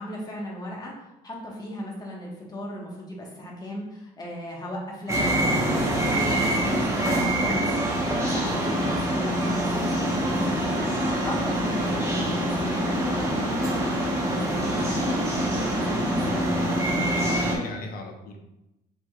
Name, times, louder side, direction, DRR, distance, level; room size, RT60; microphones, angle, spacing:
voice 1, 0.0-16.6, equal, 25° left, -3 dB, 1.4 m, -37 dB
sound 1, 5.1-17.6, right 1 dB, 15° right, 1.2 m, -25 dB
voice 2, 16.2-18.4, left 2 dB, 60° left, 2 dB, 0.9 m, -37 dB
6.0 x 3.6 x 2.4 m, 0.92 s
cardioid pair, 110°, 17 cm